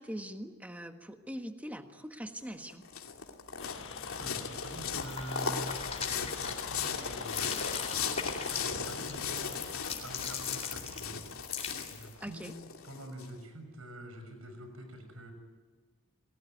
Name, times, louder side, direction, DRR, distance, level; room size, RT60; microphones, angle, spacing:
voice 1, 0.0-2.8 12.2-12.5, equal, 5° right, 6 dB, 1.5 m, -42 dB
sound 1, 2.4-13.3, left 6 dB, 75° left, 2.7 m, -37 dB
sound 2, 3.6-10.8, left 5 dB, 60° left, 1.5 m, -48 dB
voice 2, 3.9-7.7 8.4-9.6 10.0-12.5 12.8-15.3, right 1 dB, 75° right, 6 dB, 6.3 m, -46 dB
sound 3, 4.9-6.9 7.2-12.1, left 7 dB, 30° left, 3.7 m, -40 dB
30.0 x 20.0 x 9.3 m, 1.5 s
head